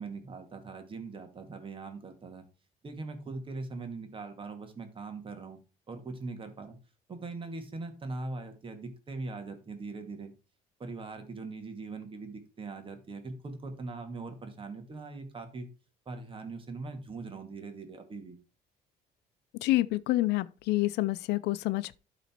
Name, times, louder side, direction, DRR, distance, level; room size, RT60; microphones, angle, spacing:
voice 1, 0.0-2.4 2.8-5.6 5.9-6.8 7.1-10.3 10.8-15.7 16.1-18.4, right 3 dB, 30° right, 2.1 m, -41 dB
voice 2, 19.6-22.0, left 17 dB, 80° left, 0.5 m, -28 dB
12.0 x 4.1 x 4.5 m
cardioid pair, 110°, 17 cm